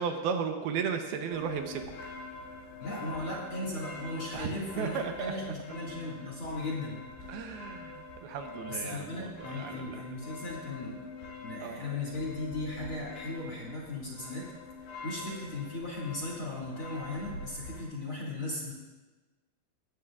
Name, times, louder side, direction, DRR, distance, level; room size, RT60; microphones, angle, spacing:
voice 1, 0.0-1.8 3.1-3.4 4.3-4.5 4.8-5.3 7.3-10.0 11.6-11.9, right 6 dB, 75° right, 5 dB, 2.6 m, -35 dB
sound 1, 1.3-17.8, left 3 dB, 85° left, 4.1 m, -45 dB
voice 2, 2.8-7.0 8.7-11.0 11.4-14.5 15.0-18.7, left 2 dB, 40° left, -4 dB, 2.1 m, -37 dB
18.0 x 14.0 x 2.4 m, 1.2 s
omnidirectional pair, 4.7 m